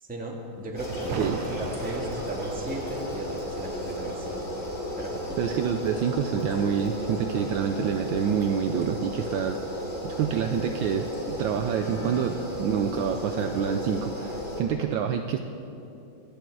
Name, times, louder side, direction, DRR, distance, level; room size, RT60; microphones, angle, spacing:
voice 1, 0.1-4.6 5.0-5.4, right 1 dB, 5° right, -1 dB, 1.3 m, -36 dB
sound 1, 0.8-14.6, equal, 30° left, 2.9 m, -34 dB
sound 2, 1.0-6.5 6.8-6.9, right 6 dB, 90° right, 1.7 m, -41 dB
voice 2, 5.4-9.6 10.0-15.4, right 7 dB, 75° right, 5 dB, 1.2 m, -27 dB
25.0 x 8.7 x 4.7 m, 2.9 s
omnidirectional pair, 2.3 m